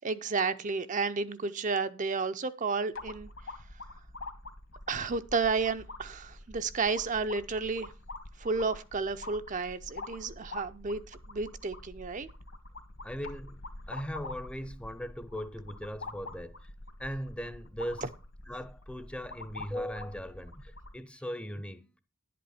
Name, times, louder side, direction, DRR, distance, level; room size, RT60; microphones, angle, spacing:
voice 1, 0.0-3.3 4.9-7.9 8.4-12.3, right 4 dB, 35° right, 0.5 m, -32 dB
sound 1, 2.9-21.0, left 2 dB, 65° left, 1.7 m, -46 dB
voice 2, 13.0-13.6 13.9-16.7 17.0-18.1 18.5-22.0, equal, 5° left, 0.6 m, -39 dB
11.0 x 8.4 x 4.2 m
head